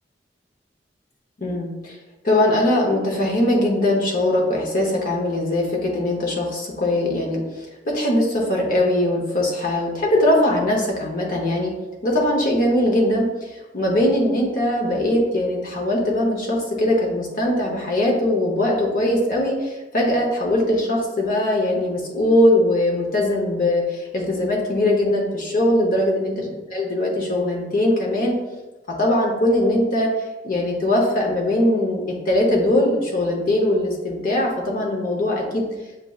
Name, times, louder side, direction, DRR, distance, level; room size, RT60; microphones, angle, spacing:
voice 1, 1.4-2.0 2.2-11.7 12.0-28.3 29.0-30.1 30.4-35.6, left 1 dB, 50° left, -1 dB, 0.7 m, -21 dB
7.0 x 2.6 x 2.3 m, 1.1 s
head